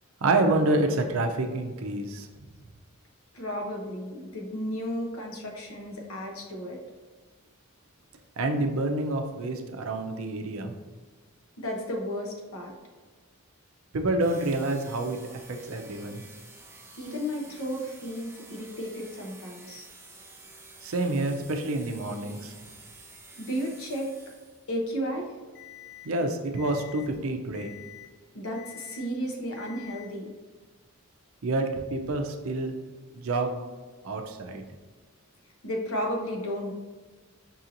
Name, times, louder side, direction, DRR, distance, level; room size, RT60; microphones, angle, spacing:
voice 1, 0.2-2.3 8.4-10.7 13.9-15.2 15.5-16.2 20.8-22.5 26.0-27.7 31.4-32.7 33.2-33.5 34.0-34.6, right 2 dB, 70° right, 5 dB, 0.5 m, -28 dB
voice 2, 3.3-6.8 11.6-12.7 17.0-19.9 23.4-24.1 24.7-25.3 28.3-30.3 35.6-36.7, equal, 70° left, 1 dB, 0.8 m, -33 dB
sound 1, 14.2-24.8, right 3 dB, 10° right, 0.5 m, -50 dB
Alarm, 25.5-26.0 26.5-27.0 27.5-28.0 28.5-29.0 29.5-30.0, left 16 dB, 55° left, 0.5 m, -47 dB
5.4 x 2.8 x 2.5 m, 1.4 s
head